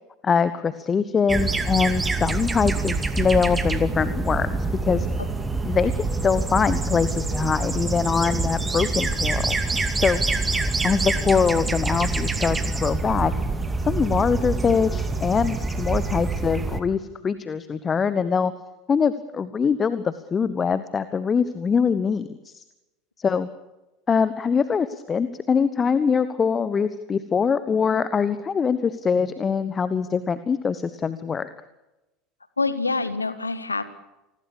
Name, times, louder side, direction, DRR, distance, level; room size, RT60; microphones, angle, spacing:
voice 1, 0.2-5.1 5.6-9.6 10.0-10.2 10.8-13.3 13.8-18.5 18.9-22.6 23.2-23.5 24.1-31.5, left 6 dB, 25° left, 14 dB, 1.2 m, -23 dB
sound 1, 1.3-16.8, right 3 dB, 15° right, 2.4 m, -26 dB
voice 2, 32.6-33.8, left 3 dB, 80° left, 13 dB, 1.7 m, -26 dB
28.5 x 20.5 x 6.9 m, 1.0 s
figure-of-eight pair, 70°, 0 cm